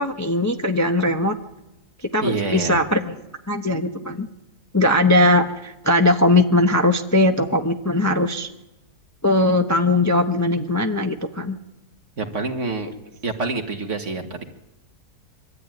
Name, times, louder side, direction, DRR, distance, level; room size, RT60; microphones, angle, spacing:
voice 1, 0.0-1.4 2.1-3.2 3.5-4.3 4.7-8.5 9.2-11.6, left 1 dB, 15° left, 4 dB, 0.8 m, -19 dB
voice 2, 2.2-2.8 12.2-12.9 13.2-14.4, right 3 dB, 50° right, 4 dB, 2.1 m, -27 dB
23.5 x 13.5 x 9.3 m, 0.96 s
omnidirectional pair, 1.7 m